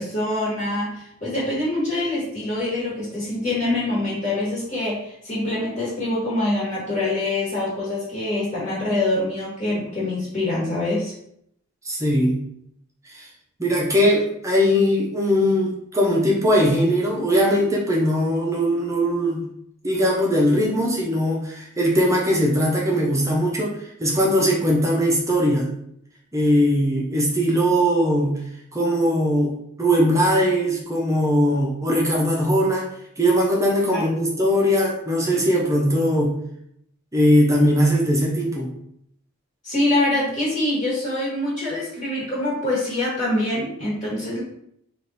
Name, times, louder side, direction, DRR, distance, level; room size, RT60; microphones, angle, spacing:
voice 1, 0.0-11.1 33.9-34.0 39.6-44.4, left 2 dB, 40° left, -7 dB, 1.4 m, -25 dB
voice 2, 11.8-12.4 13.1-13.3 13.6-19.5 19.8-25.7 26.3-28.4 28.7-32.9 33.2-36.4 37.1-38.7, equal, 15° right, -3 dB, 0.7 m, -20 dB
3.5 x 2.5 x 4.1 m, 0.73 s
head